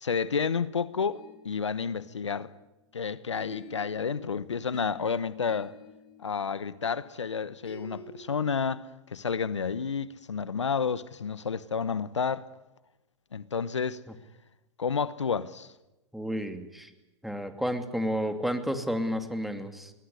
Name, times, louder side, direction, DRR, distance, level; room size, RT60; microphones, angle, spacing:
voice 1, 0.0-2.5 2.9-5.7 6.2-8.8 9.1-12.5 13.3-14.0 14.8-15.7, left 6 dB, 90° left, 1.0 m, -30 dB
sound 1, 1.1-2.9 3.4-8.2, left 1 dB, 35° left, 6.1 m, -50 dB
voice 2, 16.1-16.9 17.2-19.9, equal, ahead, 2.6 m, -31 dB
21.5 x 20.5 x 9.8 m
hypercardioid pair, 110°, 15 cm